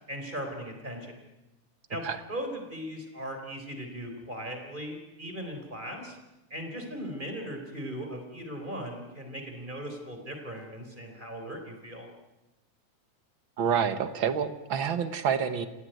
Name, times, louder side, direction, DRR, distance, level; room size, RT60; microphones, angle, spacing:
voice 1, 0.1-1.2 1.9-6.2 6.5-12.1, equal, 15° right, 4 dB, 4.1 m, -38 dB
voice 2, 13.6-15.7, right 7 dB, 55° right, 11 dB, 1.5 m, -28 dB
28.5 x 16.5 x 9.3 m, 1.0 s
omnidirectional pair, 3.4 m